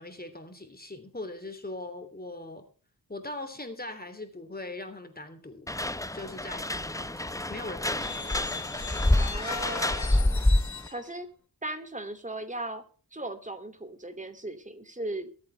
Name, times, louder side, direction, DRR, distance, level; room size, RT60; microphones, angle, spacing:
voice 1, 0.0-2.6 3.1-5.7 6.1-8.4, left 2 dB, 25° left, 7 dB, 3.1 m, -41 dB
sound 1, 5.7-10.9, left 1 dB, 10° left, 0.7 m, -27 dB
sound 2, 7.9-11.0, left 5 dB, 50° left, 1.1 m, -39 dB
voice 2, 9.1-10.4 10.9-11.3 11.6-12.8 13.1-15.3, right 2 dB, 20° right, 7 dB, 2.8 m, -37 dB
23.5 x 8.4 x 3.4 m, 0.40 s
wide cardioid pair, 75°, 37 cm